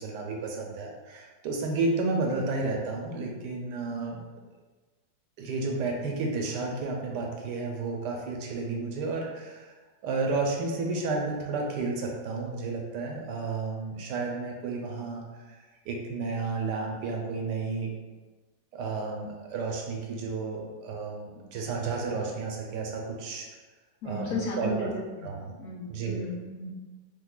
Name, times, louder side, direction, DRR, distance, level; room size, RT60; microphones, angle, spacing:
voice 1, 0.0-4.3 5.4-9.7 10.0-15.2 15.5-15.6 15.9-17.9 18.7-23.5 24.0-24.9 25.2-25.5 25.9-26.2, right 3 dB, 75° right, 0 dB, 1.2 m, -32 dB
voice 2, 24.0-24.9 25.2-25.3 25.6-26.7, left 1 dB, 60° left, -4 dB, 1.1 m, -34 dB
3.7 x 3.1 x 2.3 m, 1.3 s
omnidirectional pair, 2.0 m